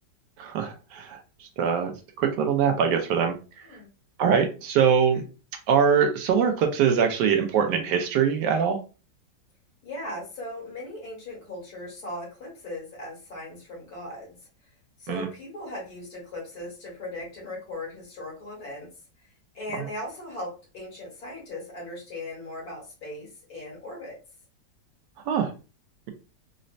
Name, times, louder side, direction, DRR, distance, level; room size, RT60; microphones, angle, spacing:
voice 1, 0.4-1.2 1.6-1.9 2.2-3.3 4.2-5.2 5.7-8.8 15.1-15.3 25.3-25.5, right 7 dB, 80° right, 4 dB, 1.2 m, -22 dB
voice 2, 9.8-14.4 15.0-18.9 19.5-24.2, left 1 dB, 60° left, -3 dB, 1.8 m, -38 dB
4.0 x 2.1 x 2.5 m, 0.33 s
omnidirectional pair, 1.9 m